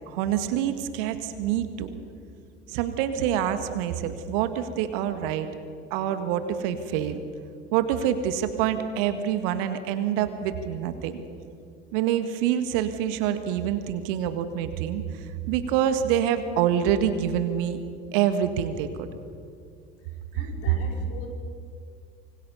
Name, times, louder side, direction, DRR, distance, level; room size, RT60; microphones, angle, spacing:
voice 1, 0.0-1.9 2.7-5.5 5.9-7.2 7.7-11.2 11.9-17.8 18.1-19.1 20.3-20.8, right 10 dB, 60° right, 10 dB, 1.7 m, -26 dB
voice 2, 20.3-21.3, left 5 dB, 45° left, 1 dB, 5.0 m, -41 dB
25.5 x 23.5 x 5.6 m, 2.3 s
figure-of-eight pair, 70°, 32 cm